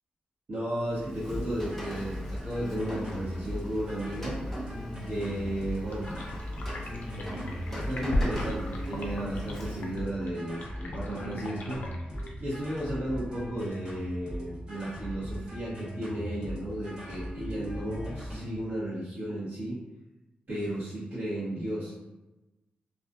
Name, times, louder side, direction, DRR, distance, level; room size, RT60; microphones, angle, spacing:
voice 1, 0.5-4.3 5.1-6.1 7.7-11.8 12.4-19.8 20.5-21.9, right 1 dB, 60° right, -12 dB, 1.0 m, -34 dB
Rain, 0.8-10.1, left 1 dB, 10° left, 0.6 m, -40 dB
sound 1, 1.3-18.6, equal, 30° right, 0.9 m, -39 dB
sound 2, 5.9-14.2, left 1 dB, 60° left, 0.4 m, -37 dB
2.5 x 2.3 x 2.4 m, 1.0 s
wide cardioid pair, 110°, 3 cm